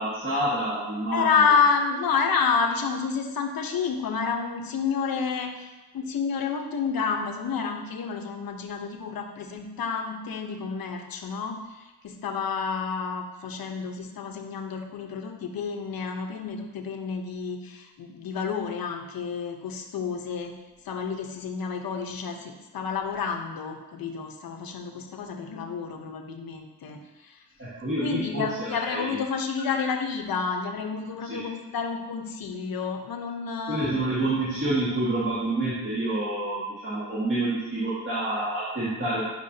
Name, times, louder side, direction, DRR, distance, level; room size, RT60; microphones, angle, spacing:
voice 1, 0.0-1.4 27.6-29.2 31.3-31.5 33.7-39.2, right 1 dB, 35° right, -10 dB, 1.9 m, -28 dB
voice 2, 1.1-20.5 20.8-27.4 28.0-34.0, left 5 dB, 85° left, 3 dB, 1.0 m, -29 dB
10.5 x 6.0 x 2.8 m, 1.1 s
wide cardioid pair, 155°, 35 cm